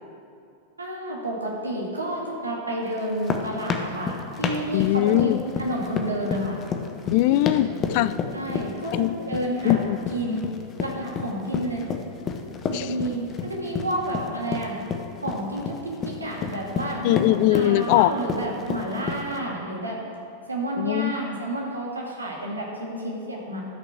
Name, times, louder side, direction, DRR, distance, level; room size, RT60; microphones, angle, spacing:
voice 1, 0.8-5.3 5.6-6.6 8.3-9.8 10.1-10.4 10.8-11.9 12.7-14.8 15.2-20.0 20.5-23.6, right 1 dB, 80° right, -2 dB, 2.0 m, -30 dB
sound 1, 3.0-19.4, left 6 dB, 30° left, 0.8 m, -30 dB
voice 2, 4.7-5.4 7.1-8.1 8.9-9.2 9.6-10.0 12.7-12.9 17.0-18.1 20.8-21.1, left 15 dB, 45° left, 16 dB, 0.3 m, -21 dB
12.0 x 6.0 x 6.3 m, 2.5 s
figure-of-eight pair, 90°, 0 cm